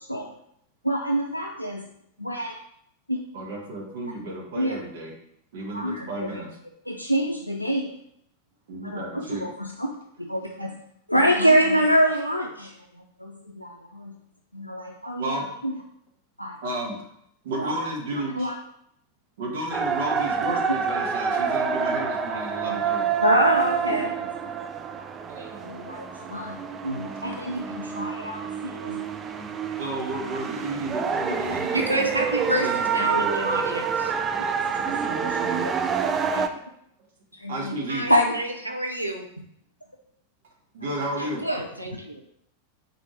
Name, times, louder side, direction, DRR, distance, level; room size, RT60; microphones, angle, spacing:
voice 1, 0.8-1.8 2.2-2.5 3.1-3.2 4.5-4.8 5.7-6.3 6.9-7.9 8.8-9.9 10.2-10.7 11.1-12.7 13.2-14.1 14.5-15.7 16.4-16.5 17.6-17.8 18.4-18.5 22.6-22.8 23.2-24.1 25.0-25.1 25.6-26.5 26.8-29.0 34.8-35.7 36.3-36.5 37.4-37.8 38.1-38.4 41.5-41.6, equal, 90° left, -1 dB, 0.4 m, -25 dB
voice 2, 3.3-5.1 5.5-6.6 8.7-9.5 15.2-15.5 16.6-17.0 17.4-18.5 19.4-23.1 25.1-25.6 25.9-26.0 29.8-33.5 36.5-36.6 37.5-38.1 40.7-41.4, right 2 dB, 55° right, -1 dB, 1.1 m, -32 dB
sound 1, 19.7-36.5, right 6 dB, 20° right, 0.3 m, -27 dB
voice 3, 31.7-34.1 37.9-39.2 41.2-42.2, right 1 dB, 85° right, 3 dB, 0.6 m, -29 dB
4.4 x 2.7 x 4.4 m, 0.71 s
figure-of-eight pair, 90°, 0 cm